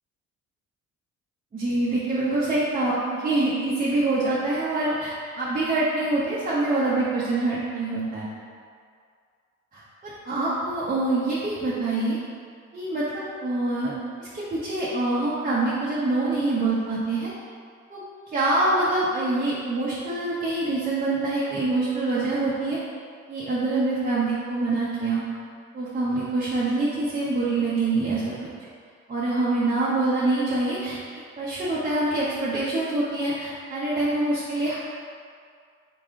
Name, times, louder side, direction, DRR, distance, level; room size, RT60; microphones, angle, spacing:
voice 1, 1.5-8.3 9.7-12.2 12.7-13.9 14.2-17.3 17.9-18.0 18.3-22.8 23.3-25.2 25.7-28.3 29.1-31.0 31.4-34.8, right 2 dB, 30° right, -9 dB, 0.8 m, -25 dB
3.8 x 3.4 x 3.6 m, 2.2 s
cardioid pair, 90°, 30 cm